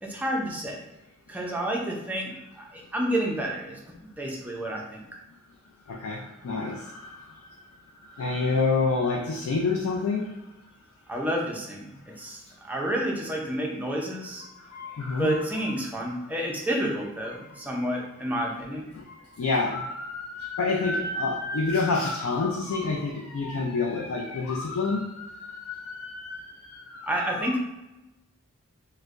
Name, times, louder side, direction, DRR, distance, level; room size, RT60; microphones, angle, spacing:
voice 1, 0.0-0.8 1.3-5.0 11.1-14.4 15.2-18.9 27.1-27.6, right 1 dB, 5° right, -1 dB, 0.5 m, -30 dB
voice 2, 5.9-7.4 8.0-10.3 14.6-15.5 18.9-27.5, left 3 dB, 75° left, 0 dB, 0.4 m, -28 dB
4.2 x 2.1 x 2.5 m, 0.95 s
head